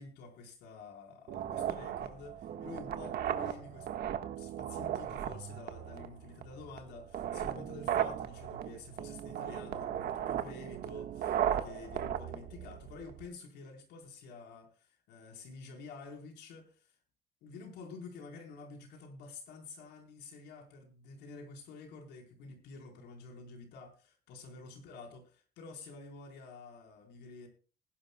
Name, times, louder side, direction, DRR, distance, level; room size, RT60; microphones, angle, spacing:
voice 1, 0.0-16.9 17.4-27.5, left 4 dB, 80° left, 2 dB, 4.1 m, -49 dB
sound 1, 1.3-13.3, right 10 dB, 65° right, 1.4 m, -36 dB
20.0 x 11.5 x 2.2 m, 0.37 s
cardioid pair, 110°, 17 cm